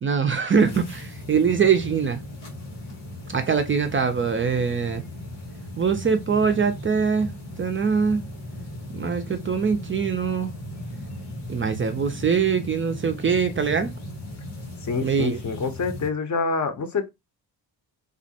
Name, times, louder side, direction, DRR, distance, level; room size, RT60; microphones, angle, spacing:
voice 1, 0.0-2.2 3.3-5.0 5.8-8.2 8.9-10.5 11.5-13.9 15.0-15.4, right 6 dB, 30° right, 0.3 m, -23 dB
sound 1, 0.5-16.1, left 1 dB, 85° left, 1.3 m, -37 dB
voice 2, 14.8-17.1, left 4 dB, 40° left, 0.6 m, -27 dB
2.4 x 2.1 x 2.6 m
supercardioid pair, 50°, 45 cm